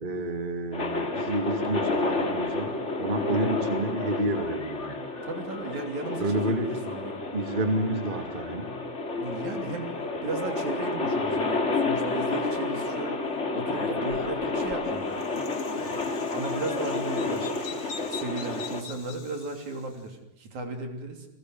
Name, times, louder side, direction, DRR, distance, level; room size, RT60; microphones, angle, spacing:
voice 1, 0.0-5.0 6.2-6.7 7.3-8.7, right 1 dB, 15° right, 6 dB, 2.4 m, -29 dB
sound 1, 0.7-18.8, left 3 dB, 25° left, 2.2 m, -30 dB
voice 2, 5.2-7.2 9.2-9.9 10.2-13.2 13.5-15.2 15.7-21.3, right 3 dB, 70° right, 5 dB, 4.6 m, -36 dB
Bird vocalization bird call bird song, 13.7-19.9, left 6 dB, 45° left, 1.9 m, -44 dB
30.0 x 21.0 x 7.9 m, 0.80 s
omnidirectional pair, 3.5 m